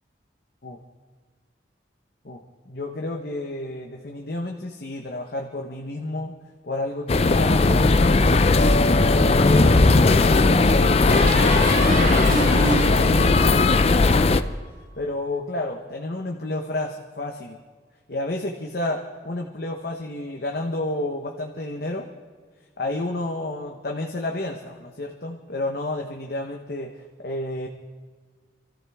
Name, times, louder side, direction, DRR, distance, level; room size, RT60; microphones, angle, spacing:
voice 1, 2.2-6.3 6.6-8.8 9.1-14.6 15.0-17.6 18.1-22.1 22.8-26.9 27.2-27.7, left 2 dB, 55° left, 2 dB, 1.0 m, -31 dB
sound 1, 7.1-14.4, left 3 dB, 35° left, 0.5 m, -17 dB
sound 2, 9.3-10.1 11.1-14.4, right 1 dB, 85° right, 4.2 m, -28 dB
26.5 x 14.0 x 3.6 m, 1.5 s
head